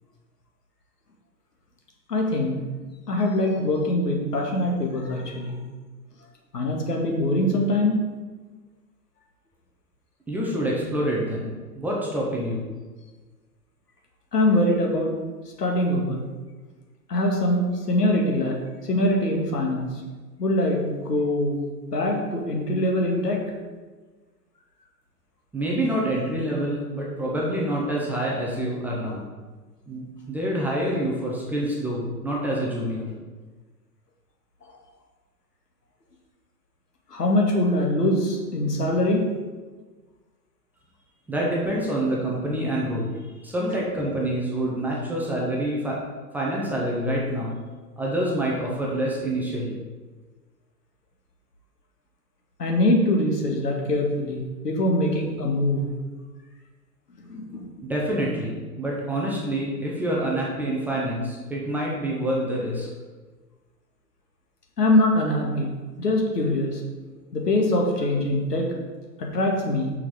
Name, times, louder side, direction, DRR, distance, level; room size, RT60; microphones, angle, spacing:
voice 1, 2.1-2.6 3.1-5.6 6.5-8.0 14.3-15.1 15.6-16.2 17.1-18.6 18.8-19.9 20.4-21.6 21.9-23.4 37.1-39.2 52.6-54.4 54.6-55.9 57.3-57.7 64.8-66.8 67.3-68.7 69.2-69.9, left 1 dB, 70° left, 0 dB, 1.9 m, -23 dB
voice 2, 10.3-12.7 25.5-29.3 29.9-33.1 41.3-43.1 43.4-46.0 46.3-47.6 48.0-49.8 57.8-62.9, right 1 dB, 5° right, -4 dB, 0.6 m, -27 dB
6.0 x 5.9 x 4.8 m, 1.3 s
figure-of-eight pair, 105°, 50 cm